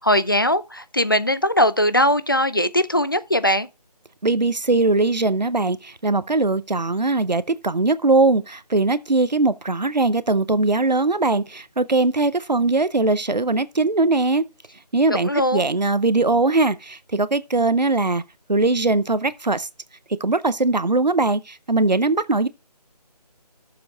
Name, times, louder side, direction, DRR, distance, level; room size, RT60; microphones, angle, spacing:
voice 1, 0.0-3.7 15.1-15.6, left 1 dB, 35° left, 0.4 m, -20 dB
voice 2, 4.2-14.4 14.9-18.2 18.5-19.7 20.2-22.5, right 3 dB, 90° right, 0.8 m, -20 dB
16.0 x 7.0 x 2.4 m
figure-of-eight pair, 160°, 21 cm